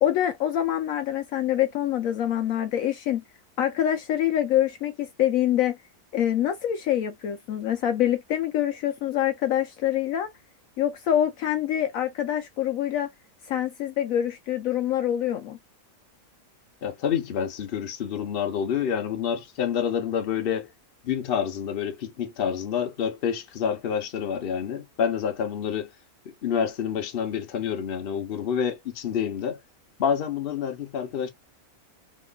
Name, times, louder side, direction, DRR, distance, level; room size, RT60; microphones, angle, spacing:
voice 1, 0.0-3.2 3.6-5.8 6.1-10.3 10.8-13.1 13.4-15.6, left 11 dB, 70° left, 0.9 m, -25 dB
voice 2, 16.8-20.7 21.0-25.9 26.2-29.6 30.0-31.3, left 8 dB, 45° left, 0.9 m, -28 dB
3.1 x 3.0 x 2.2 m
omnidirectional pair, 1.6 m